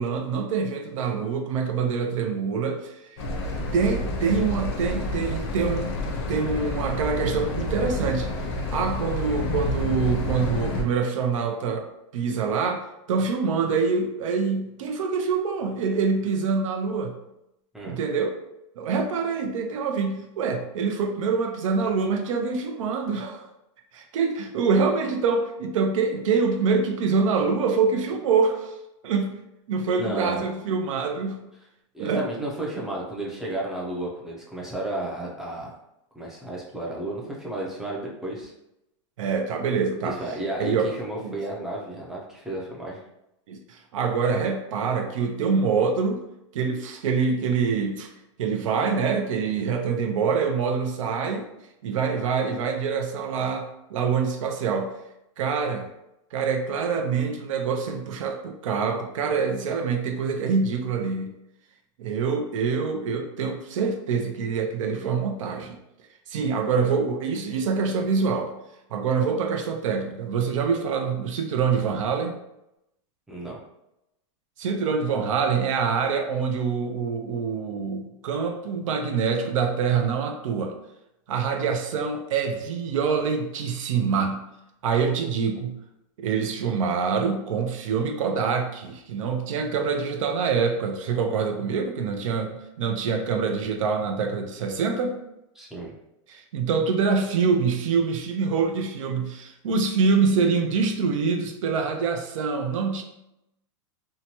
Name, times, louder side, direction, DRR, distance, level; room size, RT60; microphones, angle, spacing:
voice 1, 0.0-3.2 3.7-6.0 6.3-8.3 8.7-11.9 12.1-17.1 17.8-18.4 18.8-23.4 23.9-28.8 29.0-29.4 29.7-31.4 32.0-32.3 32.8-32.9 39.2-40.2 40.6-40.9 41.2-41.4 43.5-46.2 46.5-48.1 48.4-51.5 51.8-55.0 55.4-55.9 56.3-61.3 62.0-65.8 66.3-68.5 68.9-72.4 74.6-80.8 81.3-84.5 84.8-85.8 86.2-95.2 96.3-103.0, right 5 dB, 85° right, 4 dB, 0.5 m, -25 dB
sound 1, 3.2-10.8, left 1 dB, 55° left, 0.6 m, -29 dB
voice 2, 30.0-30.4 31.9-35.7 36.1-38.5 40.0-43.0 73.3-73.6 95.6-95.9, right 1 dB, 5° right, -4 dB, 0.3 m, -33 dB
2.8 x 2.2 x 2.8 m, 0.85 s
supercardioid pair, 165°, 16 cm